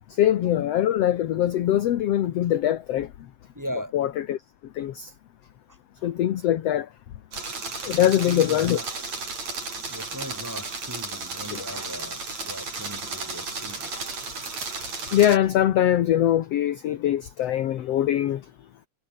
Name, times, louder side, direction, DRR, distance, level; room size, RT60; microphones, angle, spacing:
voice 1, 0.1-3.1 3.9-4.4 4.8-5.1 6.0-6.9 7.8-8.8 11.5-11.6 15.1-18.4, left 11 dB, 60° left, 1.9 m, -22 dB
voice 2, 3.5-3.9 5.7-6.1 7.9-8.9 9.9-13.9, equal, 5° right, 6.2 m, -38 dB
sound 1, 7.3-15.4, right 4 dB, 55° right, 7.7 m, -34 dB
omnidirectional pair, 3.8 m